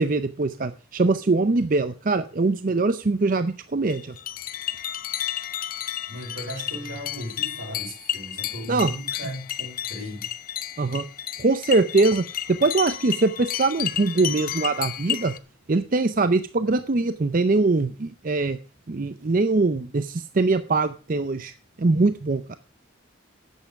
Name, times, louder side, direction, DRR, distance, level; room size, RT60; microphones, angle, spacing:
voice 1, 0.0-4.1 8.7-8.9 10.8-11.0 11.4-15.3 15.7-18.6 18.9-21.5 21.8-22.6, right 3 dB, 40° right, 11 dB, 0.5 m, -22 dB
sound 1, 3.9-15.4, left 11 dB, 45° left, 0.7 m, -32 dB
voice 2, 6.1-10.3, equal, 80° right, 2 dB, 5.7 m, -36 dB
11.5 x 8.2 x 5.8 m, 0.37 s
head